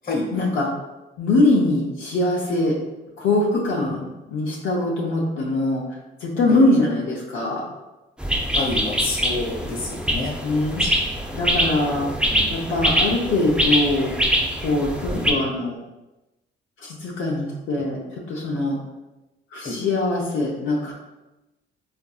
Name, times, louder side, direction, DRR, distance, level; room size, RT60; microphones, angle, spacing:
voice 1, 0.3-0.7 1.2-2.7 3.2-5.8 6.2-7.6 9.6-9.7 10.4-10.8 11.3-12.1 12.5-14.1 14.6-15.8 16.8-18.0 18.3-18.8 19.5-20.9, left 2 dB, 85° left, -4 dB, 0.6 m, -22 dB
sound 1, 8.2-15.3, equal, 5° right, 0.5 m, -24 dB
voice 2, 8.5-10.3 10.8-10.9 12.3-12.6 15.1-15.2 19.6-19.8, left 2 dB, 45° left, -2 dB, 1.1 m, -28 dB
3.7 x 2.6 x 2.3 m, 1.0 s
cardioid pair, 90°, 20 cm